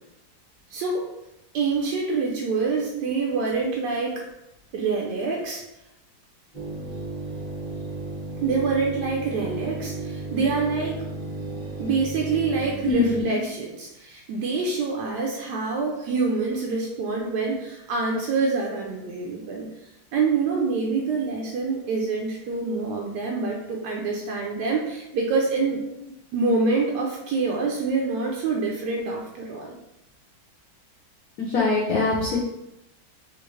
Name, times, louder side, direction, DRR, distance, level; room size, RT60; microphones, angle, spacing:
voice 1, 0.7-1.0 1.5-4.2 4.7-5.6 8.4-11.0 11.8-19.7 20.1-25.8 26.3-29.7, right 4 dB, 75° right, -1 dB, 1.0 m, -26 dB
sound 1, 6.5-13.2, right 2 dB, 25° left, 0.7 m, -34 dB
voice 2, 12.8-13.4 31.4-32.4, left 3 dB, 70° left, -4 dB, 0.9 m, -23 dB
3.8 x 2.4 x 3.1 m, 0.87 s
omnidirectional pair, 2.2 m